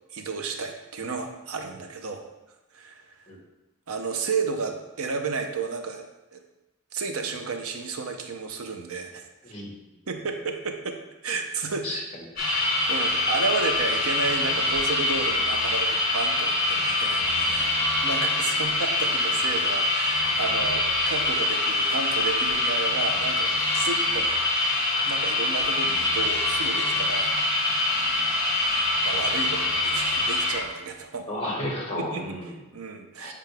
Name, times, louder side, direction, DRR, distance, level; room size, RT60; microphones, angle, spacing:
voice 1, 0.1-2.3 2.7-3.3 3.9-6.0 6.3-6.4 6.9-9.3 10.1-12.0 12.4-24.3 25.0-27.4 28.6-31.3 32.0-32.4 32.7-33.3, right 4 dB, 85° right, 5 dB, 0.7 m, -32 dB
voice 2, 9.4-9.7 11.8-12.0 31.3-32.5 33.2-33.3, left 1 dB, 30° left, -2 dB, 1.6 m, -32 dB
sound 1, 12.4-30.6, left 2 dB, 45° left, 2.3 m, -24 dB
7.6 x 4.8 x 3.5 m, 1.0 s
head